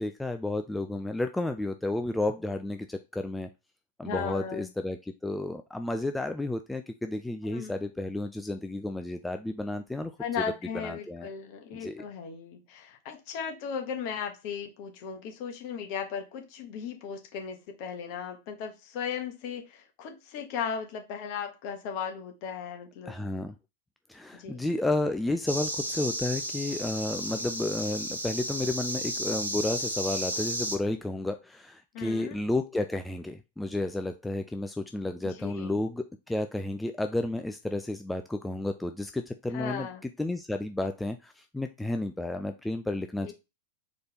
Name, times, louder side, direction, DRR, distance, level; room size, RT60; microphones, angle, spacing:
voice 1, 0.0-3.5 4.0-10.1 10.7-11.3 11.7-12.0 23.1-23.5 24.1-39.9 40.2-43.3, left 2 dB, 5° left, 6 dB, 0.4 m, -32 dB
voice 2, 4.0-4.7 7.4-7.7 10.2-23.2 24.3-24.7 31.9-32.4 35.2-35.8 39.5-40.0 43.2-43.3, left 7 dB, 45° left, 4 dB, 1.1 m, -36 dB
sound 1, 25.5-30.8, equal, 85° right, 1.0 m, -33 dB
4.2 x 3.2 x 2.9 m, 0.26 s
figure-of-eight pair, 90°, 0 cm